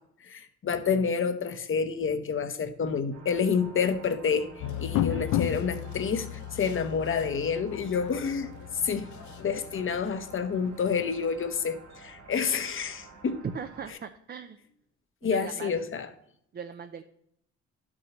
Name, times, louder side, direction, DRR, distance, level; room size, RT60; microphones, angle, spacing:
voice 1, 0.2-8.5 8.8-9.1 9.4-13.4 15.2-16.1, left 6 dB, 45° left, 10 dB, 0.9 m, -29 dB
sound 1, 3.1-13.9, right 3 dB, 55° right, 1.9 m, -50 dB
sound 2, 4.6-11.1, left 12 dB, 70° left, 0.5 m, -34 dB
voice 2, 13.4-14.6 15.2-15.7 16.5-17.0, right 6 dB, 35° right, 8 dB, 0.5 m, -38 dB
11.5 x 6.3 x 3.0 m, 0.73 s
cardioid pair, 90°, 30 cm